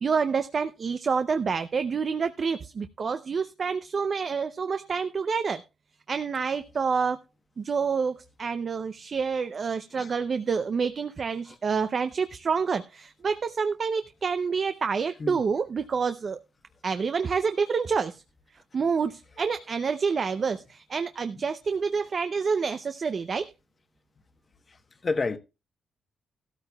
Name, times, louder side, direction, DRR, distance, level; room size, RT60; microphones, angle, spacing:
voice 1, 0.0-5.6 6.1-7.2 7.6-16.4 16.8-18.2 18.7-23.5, right 5 dB, 45° right, 0.5 m, -28 dB
voice 2, 24.7-25.4, left 3 dB, 35° left, 1.1 m, -30 dB
14.5 x 13.0 x 2.3 m
cardioid pair, 90°, 0 cm